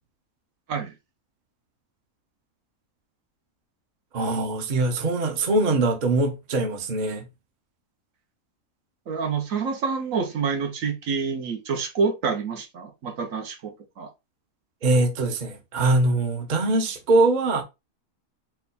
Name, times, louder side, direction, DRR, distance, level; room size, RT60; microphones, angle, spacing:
voice 1, 4.1-7.2 14.8-17.6, right 2 dB, 40° right, 0.7 m, -22 dB
voice 2, 9.1-14.1, right 5 dB, 70° right, 1.2 m, -27 dB
4.4 x 2.3 x 3.9 m
omnidirectional pair, 1.5 m